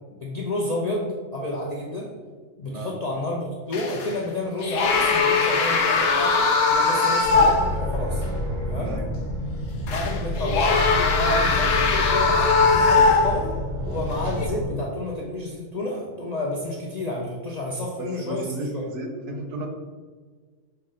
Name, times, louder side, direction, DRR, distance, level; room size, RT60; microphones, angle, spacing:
voice 1, 0.1-2.1 2.6-6.4 6.7-8.2 8.7-9.0 9.9-13.5 13.8-18.6, left 1 dB, 55° left, -3 dB, 0.4 m, -30 dB
voice 2, 2.6-3.0 8.8-9.1 18.0-19.7, right 2 dB, 70° right, 3 dB, 1.0 m, -33 dB
sound 1, 3.7-4.2 4.6-7.8 8.2-8.3 9.9-13.6 14.3-14.5, left 4 dB, 80° left, 1.0 m, -20 dB
sound 2, 7.2-14.7, left 1 dB, 90° right, 1.3 m, -29 dB
5.5 x 2.1 x 3.7 m, 1.5 s
omnidirectional pair, 1.3 m